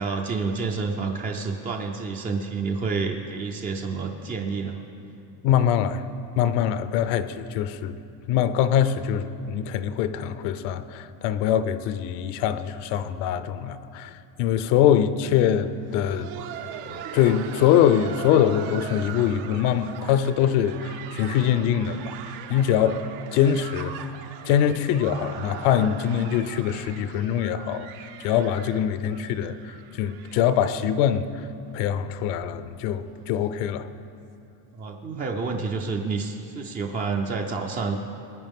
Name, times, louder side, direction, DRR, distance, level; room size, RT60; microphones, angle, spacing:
voice 1, 0.0-4.8 34.7-38.0, right 4 dB, 20° right, 2 dB, 0.3 m, -29 dB
voice 2, 5.4-6.0 6.4-8.0 8.3-16.3 16.9-23.0 23.3-24.1 24.4-27.9 28.2-31.5 31.7-33.9, left 9 dB, 70° left, 13 dB, 0.7 m, -23 dB
Laughter, 15.7-31.4 31.7-31.8 32.4-32.5 33.0-33.2 34.3-34.4, right 8 dB, 75° right, 1.0 m, -40 dB
19.5 x 9.6 x 3.6 m, 2.6 s
cardioid pair, 140°, 50 cm